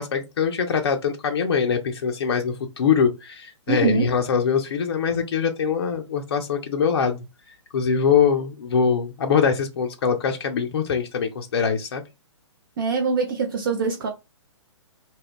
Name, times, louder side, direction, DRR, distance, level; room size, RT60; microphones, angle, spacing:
voice 1, 0.0-7.2 7.7-12.0, left 6 dB, 50° left, 0.4 m, -23 dB
voice 2, 3.7-4.1 12.8-14.1, right 5 dB, 45° right, 0.5 m, -23 dB
2.3 x 2.1 x 3.4 m
figure-of-eight pair, 120°, 16 cm